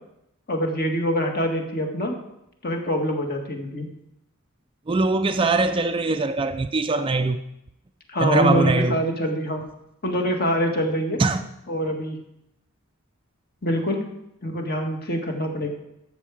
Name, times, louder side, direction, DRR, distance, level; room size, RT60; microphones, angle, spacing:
voice 1, 0.5-2.1 2.6-3.9 8.1-9.6 10.0-11.2 11.7-12.2 13.6-14.0 14.4-15.7, equal, 45° left, 1.7 m, -25 dB
voice 2, 4.9-7.4 8.2-9.0 11.2-11.4, right 3 dB, 25° right, 0.4 m, -22 dB
13.0 x 7.2 x 4.9 m
head